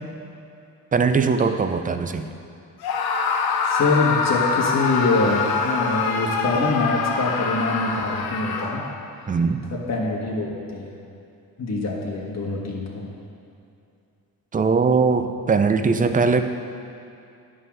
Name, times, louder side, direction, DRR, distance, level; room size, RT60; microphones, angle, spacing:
voice 1, 0.9-2.3 9.3-9.6 14.5-16.4, right 4 dB, 25° right, 8 dB, 0.4 m, -20 dB
Screaming, 2.8-9.1, left 5 dB, 85° left, 0.8 m, -24 dB
voice 2, 3.6-8.8 9.7-11.0 11.6-13.1, left 3 dB, 45° left, -2 dB, 1.5 m, -24 dB
11.0 x 3.8 x 6.0 m, 2.6 s
cardioid pair, 120°, 36 cm